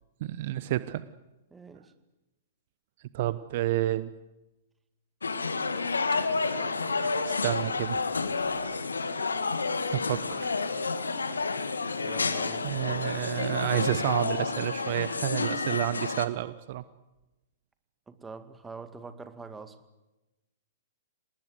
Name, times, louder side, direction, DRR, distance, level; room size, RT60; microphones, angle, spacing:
voice 1, 0.2-1.0 3.1-4.1 7.3-8.0 9.9-10.5 12.6-16.8, right 14 dB, 50° right, 15 dB, 1.0 m, -30 dB
voice 2, 1.5-1.9 12.0-12.7 18.1-19.8, right 4 dB, 10° right, 10 dB, 2.1 m, -44 dB
sound 1, 5.2-16.3, left 4 dB, 80° left, 1.8 m, -30 dB
28.0 x 19.5 x 8.1 m, 1.0 s
figure-of-eight pair, 115°, 0 cm